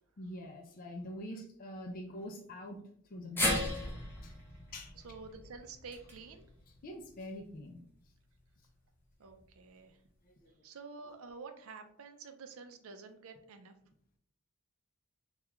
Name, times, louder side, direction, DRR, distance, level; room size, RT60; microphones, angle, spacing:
voice 1, 0.2-2.8 3.1-3.9 4.2-4.3 4.7-4.9 6.8-7.8 10.2-10.5, left 1 dB, 40° left, 1 dB, 0.4 m, -45 dB
sound 1, 3.4-7.6 8.0-8.1 9.2-9.3, left 1 dB, 10° left, 0.7 m, -37 dB
voice 2, 5.0-6.5 9.2-10.0 10.6-13.7, right 4 dB, 65° right, 7 dB, 0.5 m, -49 dB
3.4 x 2.3 x 2.9 m, 0.64 s
head